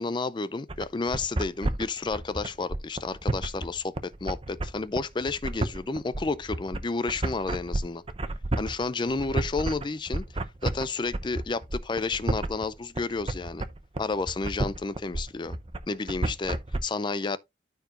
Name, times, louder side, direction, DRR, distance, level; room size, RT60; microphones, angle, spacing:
voice 1, 0.0-8.0 8.6-10.2 10.6-13.6 14.0-15.6 15.9-17.4, left 3 dB, 25° left, 0.4 m, -31 dB
sound 1, 0.7-16.8, right 2 dB, 30° right, 0.7 m, -31 dB
13.5 x 4.7 x 2.5 m
head